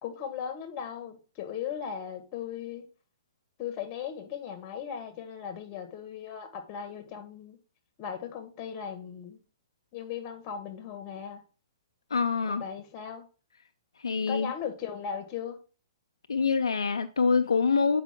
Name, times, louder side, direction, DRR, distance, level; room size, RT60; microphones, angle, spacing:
voice 1, 0.0-2.9 3.6-7.6 8.0-9.4 9.9-11.4 12.5-13.3 14.3-15.6, left 8 dB, 35° left, 1.8 m, -37 dB
voice 2, 12.1-12.6 14.0-14.5 16.3-18.0, left 5 dB, 85° left, 0.6 m, -25 dB
8.3 x 5.0 x 3.7 m
hypercardioid pair, 130°, 3 cm